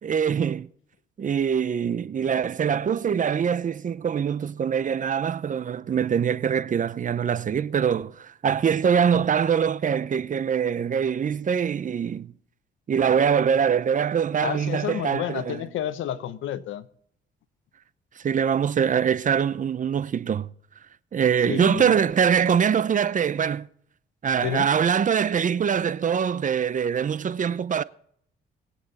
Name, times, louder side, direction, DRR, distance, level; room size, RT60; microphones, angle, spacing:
voice 1, 0.0-0.7 1.2-12.3 12.9-15.6 18.2-20.5 21.1-23.7 24.2-27.8, right 7 dB, 40° right, 0.7 m, -23 dB
voice 2, 14.4-16.9 21.5-21.9 24.4-24.7, left 10 dB, 80° left, 1.0 m, -30 dB
21.5 x 8.5 x 4.2 m
cardioid pair, 90°, 20 cm